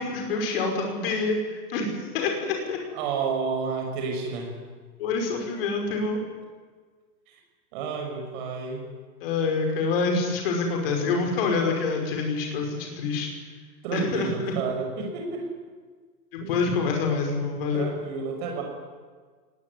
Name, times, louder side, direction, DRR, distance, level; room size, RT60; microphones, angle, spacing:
voice 1, 0.0-2.8 5.0-6.2 9.2-13.3 13.9-14.5 16.3-17.9, left 4 dB, 35° left, 2 dB, 5.6 m, -26 dB
voice 2, 2.9-4.6 7.3-7.4 7.7-8.8 13.8-15.5 16.4-16.5 17.7-18.6, right 4 dB, 30° right, 2 dB, 6.5 m, -30 dB
23.0 x 20.0 x 9.7 m, 1.5 s
hypercardioid pair, 170°, 49 cm